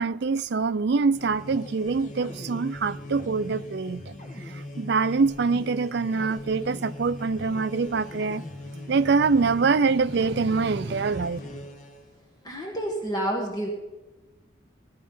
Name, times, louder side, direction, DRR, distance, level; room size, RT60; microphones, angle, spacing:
voice 1, 0.0-8.4 8.9-11.4, right 4 dB, 55° right, 0.4 m, -25 dB
sound 1, 1.0-12.1, left 1 dB, 40° left, 1.4 m, -40 dB
voice 2, 12.4-13.7, right 1 dB, 20° left, 1.5 m, -29 dB
17.5 x 11.0 x 5.5 m
head